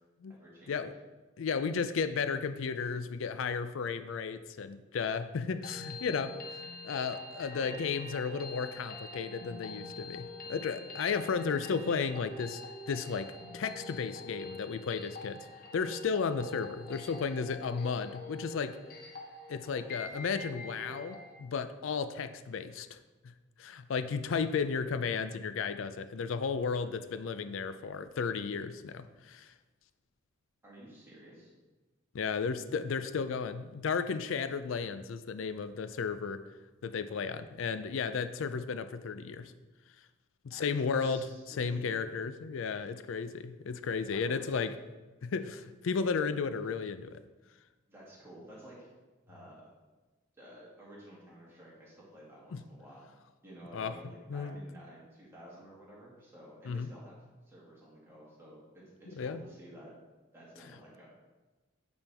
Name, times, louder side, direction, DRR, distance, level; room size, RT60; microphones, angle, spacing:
voice 1, 0.3-0.8 7.5-7.8 30.6-31.5 40.5-42.1 44.1-44.6 47.9-48.9 49.3-49.6 50.4-53.0 53.4-57.2 57.5-59.9 60.3-61.1, right 1 dB, 15° right, -6 dB, 2.1 m, -52 dB
voice 2, 1.4-12.6 12.9-15.5 15.7-18.8 19.5-23.0 23.6-29.5 32.1-36.4 36.8-39.5 40.4-44.8 45.2-47.2 52.5-52.6 53.7-53.9 54.3-54.6 56.7-56.9 59.2-59.4, left 5 dB, 70° left, 11 dB, 0.4 m, -34 dB
sound 1, 5.4-21.4, left 2 dB, 50° left, 0.9 m, -45 dB
8.7 x 4.3 x 3.5 m, 1.2 s
head